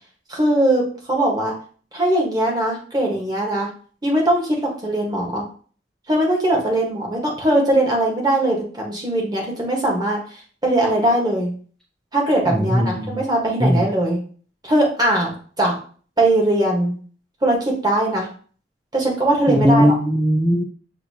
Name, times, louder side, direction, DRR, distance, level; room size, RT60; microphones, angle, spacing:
voice 1, 0.3-1.5 1.9-3.7 4.0-5.4 6.1-10.2 10.6-11.5 12.1-14.2 14.6-15.7 16.2-16.9 17.4-18.3 18.9-20.0, right 1 dB, 20° right, -1 dB, 1.3 m, -20 dB
voice 2, 12.5-13.2 13.6-13.8 19.5-20.6, equal, ahead, -1 dB, 0.4 m, -18 dB
6.6 x 2.7 x 2.8 m, 0.43 s
head